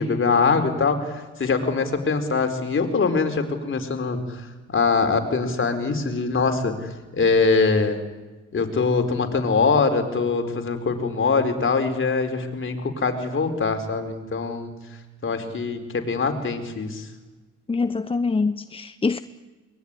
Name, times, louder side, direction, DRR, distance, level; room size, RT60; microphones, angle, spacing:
voice 1, 0.0-4.4 4.7-8.0 8.5-14.7 15.2-17.1, left 4 dB, 40° left, 4.4 m, -23 dB
voice 2, 17.7-19.2, left 4 dB, 20° left, 0.8 m, -24 dB
23.5 x 20.5 x 9.9 m
cardioid pair, 90°, 30 cm